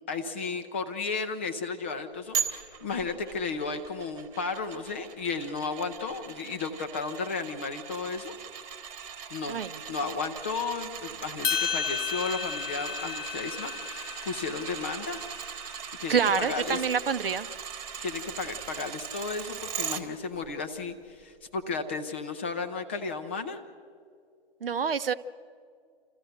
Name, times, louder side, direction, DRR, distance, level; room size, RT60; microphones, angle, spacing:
voice 1, 0.1-8.3 9.3-9.6 9.9-15.2 16.0-16.8 18.0-23.6, left 4 dB, 10° left, 7 dB, 0.4 m, -34 dB
sound 1, 2.3-20.0 20.4-20.5, right 7 dB, 25° right, 1.3 m, -39 dB
sound 2, 11.4-15.9, left 6 dB, 65° left, 0.8 m, -34 dB
voice 2, 16.1-17.5 24.6-25.1, right 6 dB, 60° right, 12 dB, 0.7 m, -26 dB
29.0 x 14.0 x 6.6 m, 2.2 s
figure-of-eight pair, 135°, 32 cm